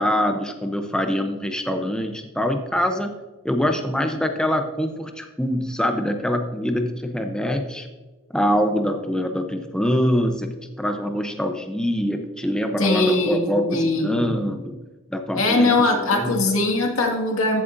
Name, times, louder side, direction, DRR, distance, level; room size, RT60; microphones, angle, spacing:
voice 1, 0.0-3.1 3.4-7.9 8.3-10.5 10.8-14.8 15.1-15.7 16.2-16.4, equal, 5° left, 5 dB, 0.6 m, -24 dB
voice 2, 12.8-14.2 15.3-17.6, left 2 dB, 85° left, 1 dB, 1.9 m, -21 dB
15.0 x 7.6 x 2.6 m, 1.2 s
head